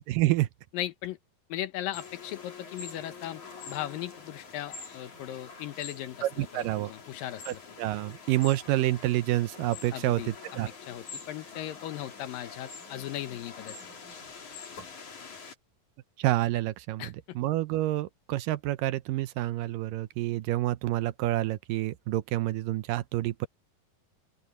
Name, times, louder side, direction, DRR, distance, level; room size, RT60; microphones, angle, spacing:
voice 1, 0.1-0.5 6.2-6.9 7.5-10.7 16.2-23.5, right 16 dB, 80° right, 2.2 m, -28 dB
voice 2, 0.7-1.2 1.5-3.4 3.7-7.6 9.9-10.3 10.8-13.8 17.0-17.4, left 13 dB, 80° left, 2.7 m, -37 dB
sound 1, 1.9-15.6, left 5 dB, 55° left, 5.3 m, -46 dB
open air
omnidirectional pair, 4.1 m